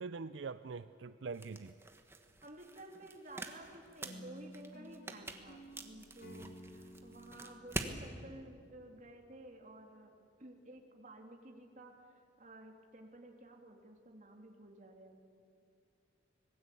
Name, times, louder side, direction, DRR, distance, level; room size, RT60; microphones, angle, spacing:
voice 1, 0.0-1.7, right 4 dB, 75° right, 12 dB, 0.5 m, -43 dB
sound 1, 1.3-8.0, right 2 dB, 15° right, 1.4 m, -46 dB
voice 2, 2.4-10.1 10.4-11.9 12.4-15.2, right 1 dB, 40° right, 2 dB, 2.9 m, -53 dB
sound 2, 4.0-9.2, equal, 50° left, 1.4 m, -55 dB
26.0 x 20.0 x 8.5 m, 2.5 s
head